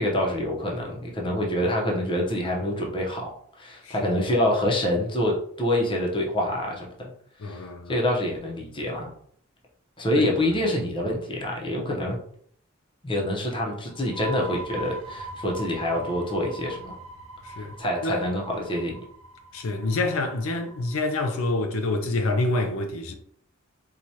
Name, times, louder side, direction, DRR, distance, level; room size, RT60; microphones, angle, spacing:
voice 1, 0.0-7.1 7.4-7.6 7.9-9.1 10.0-12.2 13.0-16.9 17.8-19.0, left 1 dB, 25° left, 0.7 m, -26 dB
voice 2, 3.8-4.2 7.4-8.0 10.1-10.2 17.4-17.7 18.0-18.3 19.5-23.1, left 2 dB, 80° left, 0.5 m, -27 dB
sound 1, 13.9-21.3, right 2 dB, 85° right, 0.6 m, -41 dB
4.6 x 2.4 x 2.8 m
head